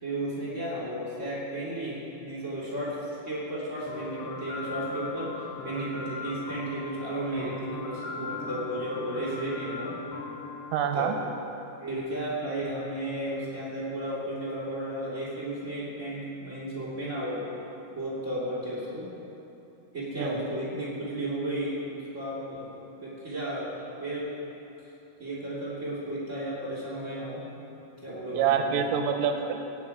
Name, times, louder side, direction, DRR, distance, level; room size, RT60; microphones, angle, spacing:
voice 1, 0.0-9.9 10.9-11.1 11.8-17.5 17.9-19.1 19.9-22.7 23.0-24.3 25.2-27.4 28.0-28.9, right 1 dB, 25° right, -8 dB, 1.8 m, -34 dB
sound 1, 3.9-11.7, left 3 dB, 60° left, 3.5 m, -39 dB
voice 2, 10.7-11.2 20.2-20.4 28.3-29.6, right 7 dB, 85° right, 5 dB, 3.2 m, -26 dB
18.0 x 9.5 x 4.8 m, 2.9 s
omnidirectional pair, 6.0 m